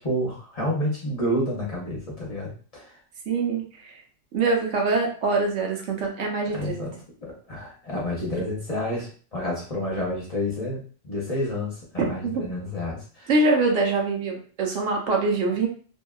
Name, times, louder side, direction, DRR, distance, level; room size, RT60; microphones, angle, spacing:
voice 1, 0.0-2.8 6.5-6.9 7.2-13.3, left 1 dB, 35° left, -5 dB, 0.7 m, -29 dB
voice 2, 3.3-4.0 4.3-6.9 12.0-12.5 13.3-15.7, right 3 dB, 80° right, 0 dB, 1.0 m, -24 dB
2.7 x 2.3 x 2.3 m, 0.40 s
omnidirectional pair, 1.2 m